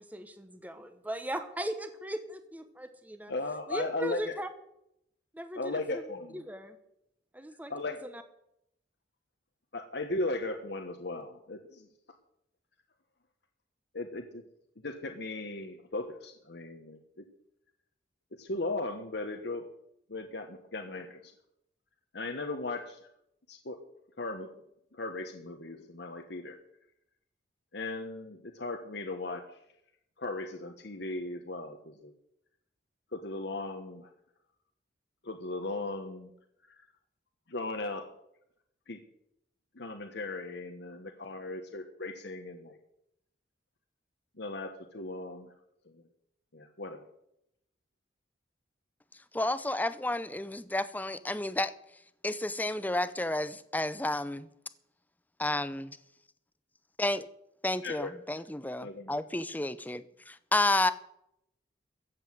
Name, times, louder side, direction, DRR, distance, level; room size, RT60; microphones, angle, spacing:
voice 1, 0.0-3.3 3.7-4.5 5.3-6.1 6.3-6.8 7.3-7.7 8.0-8.2, right 1 dB, 10° right, 1.0 m, -38 dB
voice 2, 3.3-4.3 5.6-6.4 7.7-8.0 9.7-11.9 13.9-14.4 14.8-17.2 18.4-19.7 20.1-21.3 22.1-23.0 23.5-23.8 24.2-24.5 24.9-26.6 27.7-29.4 30.2-32.1 33.1-34.1 35.2-36.3 37.5-38.0 38.9-39.0 39.7-42.8 44.4-45.5 45.9-46.0 46.5-47.0 57.8-58.4 58.8-59.2, left 2 dB, 60° left, 1.3 m, -37 dB
voice 3, 49.3-51.7 52.2-54.5 55.4-55.8 57.0-57.3 57.6-60.9, left 2 dB, 10° left, 0.6 m, -31 dB
14.5 x 8.1 x 7.8 m
head